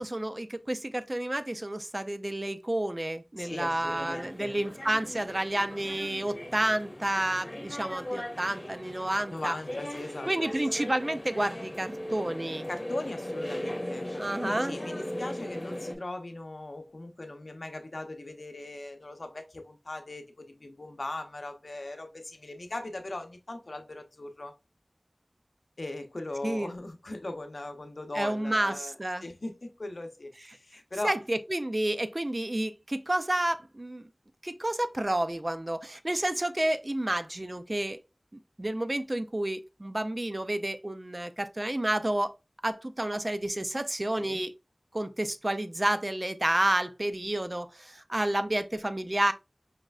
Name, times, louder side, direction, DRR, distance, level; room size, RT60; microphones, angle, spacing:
voice 1, 0.0-9.5 10.3-12.7 14.2-14.8 26.4-26.7 28.1-29.2 31.0-34.1 34.4-38.0 38.6-42.3 42.6-44.5 44.9-49.3, right 1 dB, 40° right, 0.4 m, -30 dB
voice 2, 3.4-4.6 9.3-10.5 12.7-24.5 25.8-31.2 44.2-44.4, left 2 dB, 80° left, 0.6 m, -39 dB
sound 1, 3.4-16.0, left 1 dB, 35° left, 1.3 m, -39 dB
sound 2, 10.0-11.2 11.5-12.7 13.0-14.2 14.6-15.7, equal, 20° right, 0.8 m, -42 dB
4.9 x 3.1 x 2.3 m
wide cardioid pair, 50°, 0 cm